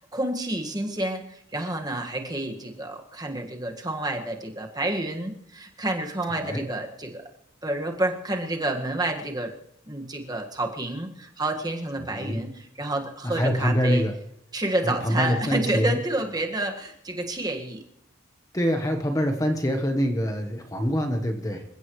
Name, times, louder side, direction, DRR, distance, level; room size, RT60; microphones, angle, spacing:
voice 1, 0.0-7.2 7.6-9.5 9.9-14.1 14.5-17.8, right 1 dB, 20° right, 2 dB, 1.7 m, -29 dB
voice 2, 6.3-6.7 12.1-12.4 13.2-14.1 14.8-16.0 18.5-21.6, equal, 15° left, 5 dB, 1.1 m, -25 dB
27.5 x 16.0 x 3.2 m, 0.75 s
head